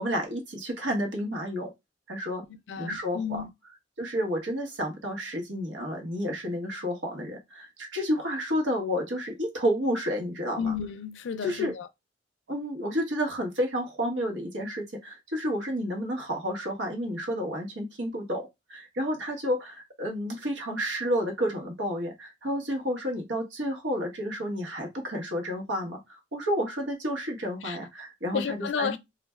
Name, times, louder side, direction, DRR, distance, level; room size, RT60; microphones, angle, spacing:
voice 1, 0.0-1.7 2.1-2.4 2.8-3.4 4.0-10.7 11.4-11.7 12.5-28.9, equal, 80° right, 1.1 m, -30 dB
voice 2, 2.5-3.5 10.6-11.9 27.6-27.8 28.3-29.0, left 6 dB, 90° left, 0.4 m, -32 dB
2.5 x 2.1 x 3.3 m
head